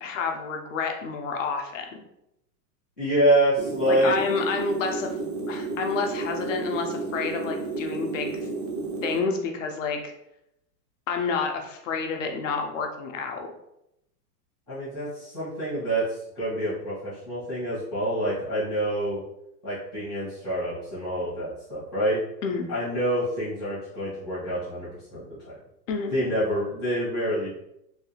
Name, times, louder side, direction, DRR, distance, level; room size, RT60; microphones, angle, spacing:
voice 1, 0.0-2.0 3.9-5.1 5.5-8.4 9.0-10.1 11.1-13.5 22.4-22.7 25.9-26.1, left 5 dB, 50° left, 3 dB, 0.5 m, -29 dB
voice 2, 3.0-4.1 14.7-19.2 19.6-22.2 22.7-25.5 26.1-27.5, right 1 dB, ahead, -21 dB, 0.4 m, -27 dB
sound 1, 3.6-9.2, right 3 dB, 55° right, 0.5 m, -32 dB
3.2 x 2.3 x 3.0 m, 0.81 s
supercardioid pair, 175°, 50 cm